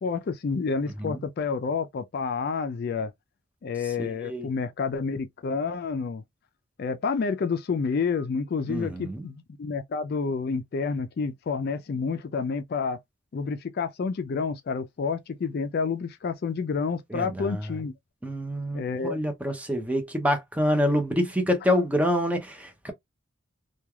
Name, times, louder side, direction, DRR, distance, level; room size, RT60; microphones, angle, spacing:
voice 1, 0.0-3.1 3.6-6.2 6.8-13.0 13.3-17.9 18.7-19.2, left 5 dB, 50° left, 0.3 m, -29 dB
voice 2, 4.0-4.5 8.7-9.3 17.1-17.7 18.2-22.9, equal, 5° right, 0.5 m, -27 dB
3.2 x 2.3 x 2.2 m
head